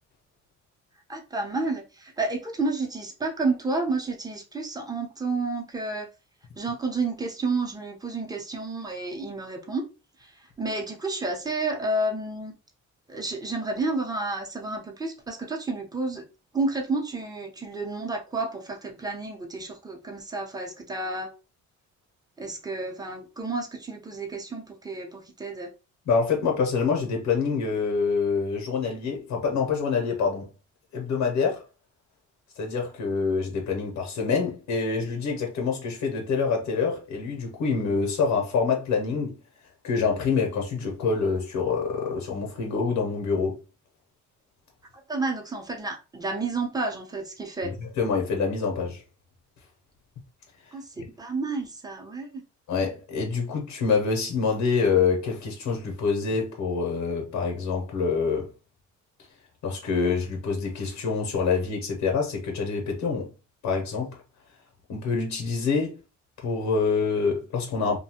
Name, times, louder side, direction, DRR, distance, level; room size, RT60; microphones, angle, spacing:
voice 1, 1.1-6.1 6.6-9.8 10.2-10.3 10.6-12.5 13.1-16.3 16.5-21.3 22.4-25.7 45.1-47.7 50.7-52.4, right 3 dB, 15° right, 0.8 m, -30 dB
voice 2, 26.1-30.5 30.9-31.6 32.6-39.4 39.8-43.6 47.6-49.0 52.7-58.5 59.6-63.3 63.6-64.2 64.9-66.0 66.4-68.0, left 5 dB, 80° left, 0.8 m, -26 dB
2.6 x 2.3 x 2.8 m
cardioid pair, 90°, 30 cm